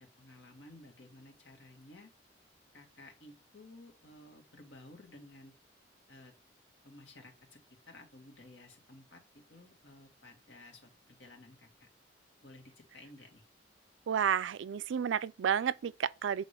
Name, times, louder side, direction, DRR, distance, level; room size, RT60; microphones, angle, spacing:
voice 1, 0.0-2.1 2.7-5.5 6.1-6.3 6.8-7.6 7.9-11.9 12.4-13.4, left 2 dB, 75° left, 2.1 m, -55 dB
voice 2, 14.1-16.4, right 8 dB, 85° right, 0.4 m, -31 dB
8.2 x 3.8 x 3.4 m
head